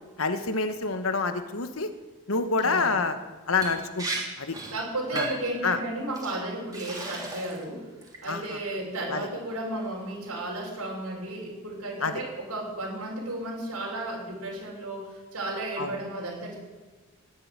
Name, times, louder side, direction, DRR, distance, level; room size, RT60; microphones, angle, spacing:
voice 1, 0.2-1.9 2.3-3.2 3.5-4.1 4.4-4.5 5.1-5.3 5.6-5.8 8.3-8.4 9.1-9.3 12.0-12.1 15.8-15.9, left 4 dB, 65° left, 9 dB, 1.3 m, -27 dB
voice 2, 2.6-3.0 4.7-7.8 8.2-16.6, right 1 dB, 90° right, -3 dB, 6.1 m, -33 dB
Liquid, 3.6-3.7 4.0-4.2 4.5-4.7 5.2-5.5 6.1-6.3 6.7-7.6 8.0-8.4, right 2 dB, 15° right, 3.2 m, -34 dB
18.0 x 7.8 x 9.7 m, 1.3 s
head